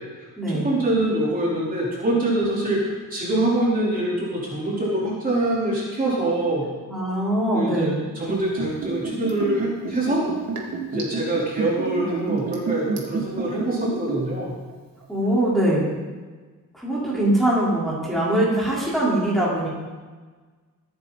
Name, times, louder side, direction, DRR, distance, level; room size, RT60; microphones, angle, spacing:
voice 1, 0.5-6.6 7.5-10.2 10.9-14.5 17.0-17.2, right 1 dB, 25° right, -6 dB, 4.5 m, -24 dB
voice 2, 6.9-7.9 15.1-15.8 16.7-19.7, right 1 dB, ahead, -8 dB, 4.7 m, -22 dB
Liquid, 8.2-14.4 14.7-14.8, right 4 dB, 55° right, 3.1 m, -28 dB
23.5 x 10.0 x 4.4 m, 1.4 s
cardioid pair, 150°, 33 cm